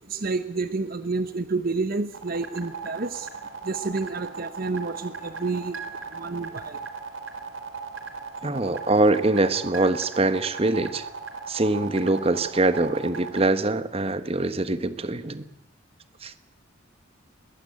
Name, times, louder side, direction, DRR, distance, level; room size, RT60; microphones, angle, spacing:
voice 1, 0.1-3.3 3.7-5.8 6.2-6.8, right 3 dB, 45° right, 11 dB, 0.9 m, -29 dB
sound 1, 2.1-13.5, right 5 dB, 85° right, 3.2 m, -37 dB
voice 2, 8.4-11.0 11.5-15.4 16.2-16.3, right 2 dB, 30° right, 12 dB, 1.2 m, -23 dB
21.5 x 19.5 x 8.7 m, 0.84 s
head